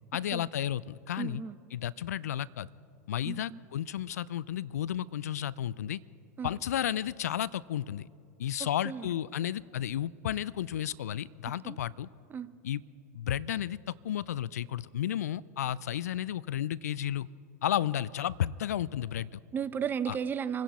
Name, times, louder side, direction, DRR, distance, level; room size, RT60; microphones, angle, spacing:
voice 1, 0.1-1.4 1.7-2.7 3.1-6.0 6.4-8.1 8.4-12.1 12.6-12.8 13.1-17.3 17.6-19.4 20.1-20.2, left 11 dB, 75° left, 21 dB, 0.4 m, -32 dB
voice 2, 1.2-1.5 3.2-3.6 6.4-6.5 8.6-9.1 11.6-11.8 12.3-12.5 19.5-20.6, right 7 dB, 25° right, 13 dB, 0.6 m, -34 dB
25.5 x 10.5 x 4.2 m, 2.5 s
hypercardioid pair, 95°, 9 cm